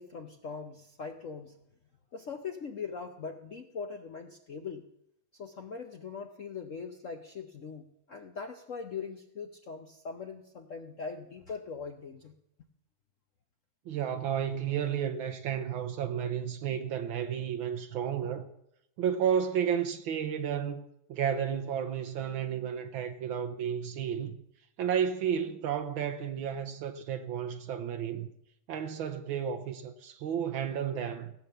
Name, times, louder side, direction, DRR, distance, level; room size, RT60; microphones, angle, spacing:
voice 1, 0.0-1.6 2.1-4.9 5.3-12.3, left 5 dB, 55° left, 0.9 m, -41 dB
voice 2, 13.9-18.5 19.0-24.4 24.8-28.3 28.7-31.3, right 8 dB, 75° right, 1.6 m, -32 dB
17.0 x 8.6 x 6.8 m
omnidirectional pair, 2.2 m